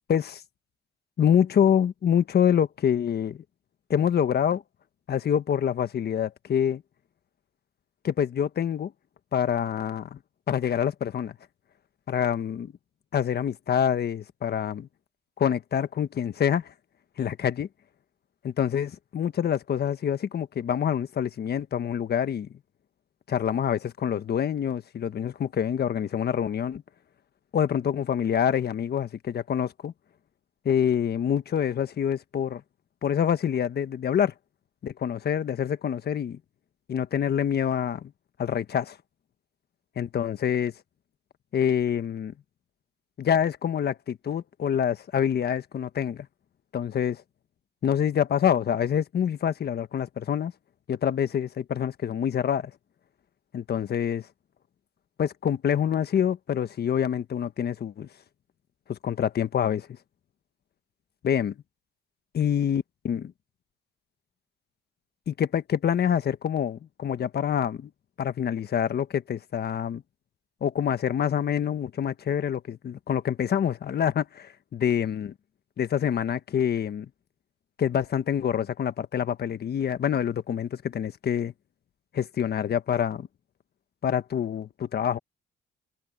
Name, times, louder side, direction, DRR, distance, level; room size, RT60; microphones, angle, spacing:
voice 1, 0.1-0.4 1.2-3.4 3.9-4.6 5.1-6.8 8.0-8.9 9.3-10.2 10.5-11.3 12.1-12.7 13.1-14.9 15.4-16.7 17.2-17.7 18.4-22.5 23.3-26.8 27.5-29.9 30.6-32.6 33.0-34.3 34.8-36.4 36.9-38.1 38.4-39.0 40.0-40.7 41.5-42.3 43.2-46.3 46.7-47.2 47.8-50.5 50.9-52.7 53.5-54.3 55.2-58.1 58.9-59.9 61.2-61.5 62.3-63.3 65.3-67.9 68.2-70.0 70.6-75.3 75.8-77.1 77.8-81.5 82.1-83.3 84.0-85.2, left 8 dB, 55° left, 1.4 m, -26 dB
cardioid pair, 90°, 20 cm